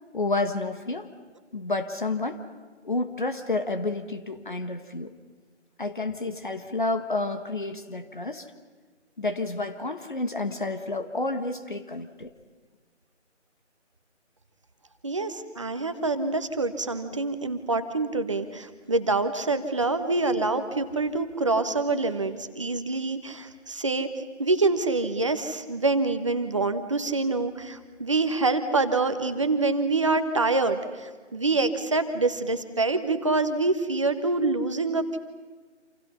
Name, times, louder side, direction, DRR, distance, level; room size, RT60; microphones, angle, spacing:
voice 1, 0.1-1.1 1.5-2.4 2.8-5.1 5.8-8.5 9.2-12.3, left 2 dB, 40° left, 8 dB, 1.6 m, -30 dB
voice 2, 15.0-24.1 24.4-35.2, right 3 dB, 25° right, 9 dB, 1.3 m, -26 dB
29.0 x 27.5 x 5.7 m, 1.4 s
figure-of-eight pair, 160°, 36 cm